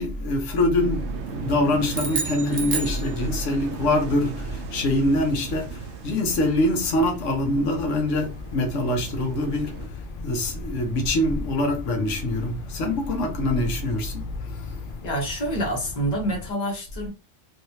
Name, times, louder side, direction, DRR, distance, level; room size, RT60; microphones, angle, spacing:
voice 1, 0.0-14.9, left 1 dB, 80° left, 1.2 m, -24 dB
sound 1, 0.8-9.9, right 5 dB, 70° right, 0.9 m, -37 dB
sound 2, 1.9-3.7, right 5 dB, 45° right, 0.6 m, -30 dB
sound 3, 6.3-16.5, left 4 dB, 60° left, 0.6 m, -38 dB
voice 2, 15.0-17.1, right 1 dB, 35° left, 1.2 m, -27 dB
3.2 x 2.8 x 2.7 m
omnidirectional pair, 1.2 m